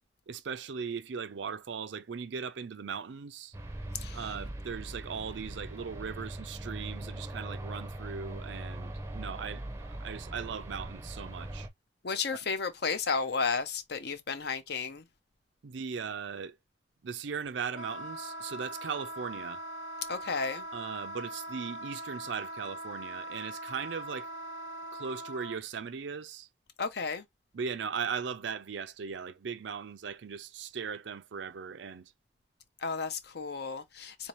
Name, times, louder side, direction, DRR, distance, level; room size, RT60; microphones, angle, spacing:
voice 1, 0.3-3.6 4.1-11.7 12.3-12.4 15.6-16.6 17.0-19.6 20.7-24.3 24.9-26.5 27.5-32.1, right 6 dB, 80° right, 0.5 m, -38 dB
sound 1, 3.5-11.7, right 1 dB, 15° right, 0.5 m, -41 dB
voice 2, 12.0-15.0 20.1-20.6 26.8-27.2 32.8-34.3, left 5 dB, 60° left, 0.7 m, -33 dB
Wind instrument woodwind instrument, 17.7-25.6, right 1 dB, 90° left, 0.9 m, -41 dB
3.9 x 2.7 x 3.0 m
head